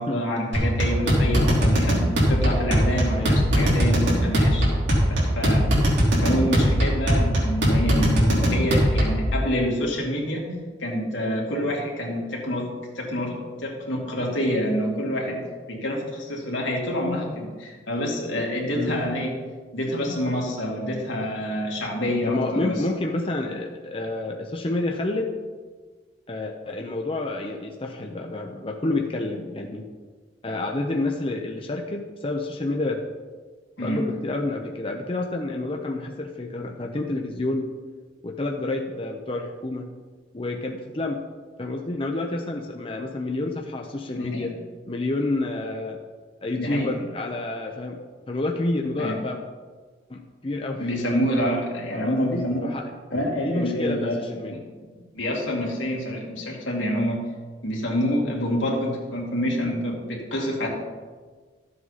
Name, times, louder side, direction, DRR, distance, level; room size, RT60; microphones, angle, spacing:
voice 1, 0.0-2.0 2.3-4.6 5.1-5.7 6.2-10.5 10.8-15.4 15.7-19.4 19.7-22.8 33.8-34.1 44.1-44.5 46.6-46.9 49.0-49.2 50.8-52.7 53.1-57.2 57.6-60.7, equal, 85° left, -2 dB, 2.6 m, -27 dB
sound 1, 0.5-9.3, equal, 75° right, 3.3 m, -21 dB
voice 2, 22.2-25.3 26.3-29.8 30.4-33.0 33.8-37.7 38.2-39.9 40.3-41.2 41.6-44.6 44.9-46.0 46.4-48.0 48.3-49.4 50.1-50.9 51.9-52.8 53.4-54.6, left 2 dB, 30° left, 2 dB, 0.7 m, -29 dB
13.5 x 7.7 x 4.1 m, 1.5 s
head